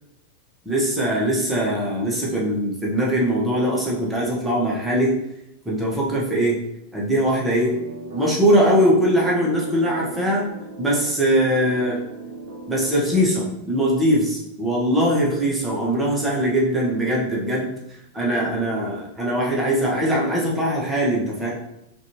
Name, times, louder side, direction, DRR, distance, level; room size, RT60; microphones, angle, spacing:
voice 1, 0.6-5.2 5.6-6.6 6.9-7.8 8.1-10.5 10.8-12.0 12.7-17.7 18.1-21.5, equal, 10° right, -5 dB, 1.1 m, -21 dB
sound 1, 7.6-13.5, right 2 dB, 55° right, 0.7 m, -38 dB
4.0 x 2.5 x 3.0 m, 0.84 s
figure-of-eight pair, 90°, 0 cm